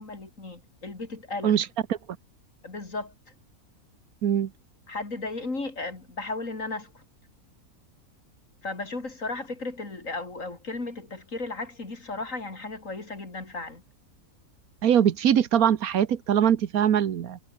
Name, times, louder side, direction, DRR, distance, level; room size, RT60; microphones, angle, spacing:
voice 1, 0.0-1.6 2.6-3.1 4.9-7.0 8.6-13.8, left 3 dB, 60° left, 4.3 m, -35 dB
voice 2, 14.8-17.4, right 9 dB, 75° right, 1.5 m, -22 dB
omnidirectional pair, 1.5 m